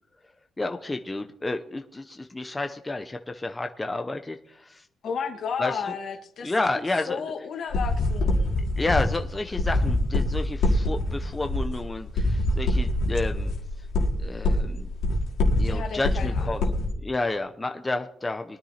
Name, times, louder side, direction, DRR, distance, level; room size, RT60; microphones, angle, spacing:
voice 1, 0.6-4.8 5.6-5.9 6.4-7.2 8.8-13.5 14.2-14.9 15.6-16.6 17.0-18.6, left 2 dB, 15° left, 6 dB, 0.6 m, -30 dB
voice 2, 5.0-6.8 7.0-8.6 15.6-16.8, left 6 dB, 65° left, 5 dB, 1.5 m, -33 dB
sound 1, 7.7-16.9, left 1 dB, 85° left, 2.2 m, -25 dB
22.0 x 10.0 x 2.8 m, 0.79 s
cardioid pair, 90°, 0 cm